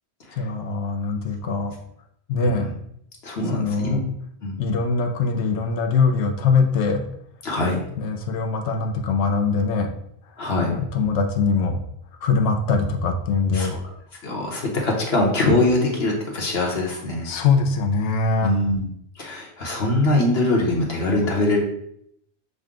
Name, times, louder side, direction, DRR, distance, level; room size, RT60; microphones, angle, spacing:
voice 1, 0.4-1.7 2.3-2.7 3.5-4.0 4.6-7.0 8.0-9.9 10.6-11.8 12.2-13.8 17.2-18.5, left 4 dB, 85° left, 4 dB, 0.9 m, -22 dB
voice 2, 3.2-4.0 4.4-4.5 7.4-7.8 10.4-10.7 13.5-13.8 14.2-17.3 18.4-21.6, left 2 dB, 65° left, -1 dB, 1.2 m, -23 dB
6.5 x 2.2 x 3.7 m, 0.72 s
omnidirectional pair, 1.2 m